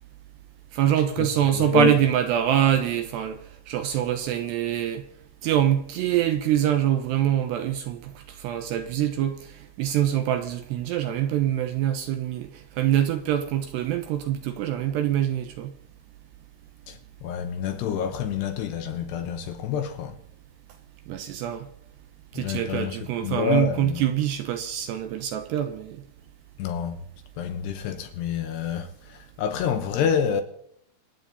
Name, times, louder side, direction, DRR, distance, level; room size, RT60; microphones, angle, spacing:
voice 1, 0.7-5.1 5.4-15.7 21.1-21.7 22.3-26.0, right 11 dB, 80° right, 2.6 m, -25 dB
voice 2, 1.5-2.0 16.9-20.2 22.4-24.0 26.6-27.0 27.4-30.4, left 8 dB, 75° left, 2.8 m, -28 dB
27.0 x 9.1 x 4.1 m
omnidirectional pair, 5.6 m